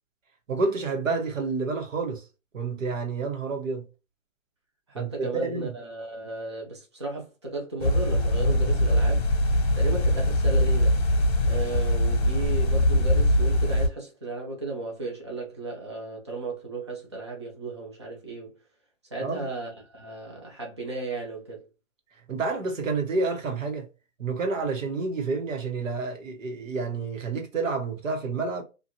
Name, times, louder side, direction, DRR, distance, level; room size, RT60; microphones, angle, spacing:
voice 1, 0.5-2.2 2.5-3.8 4.9-5.7 19.2-19.5 22.3-23.8 24.2-28.6, right 4 dB, 80° right, 1.2 m, -29 dB
voice 2, 4.9-9.3 9.7-11.0 11.4-18.5 19.1-21.7, right 2 dB, 25° right, 0.5 m, -35 dB
sound 1, 7.8-13.9, left 1 dB, 55° left, 0.9 m, -22 dB
2.6 x 2.5 x 2.7 m
hypercardioid pair, 170°, 38 cm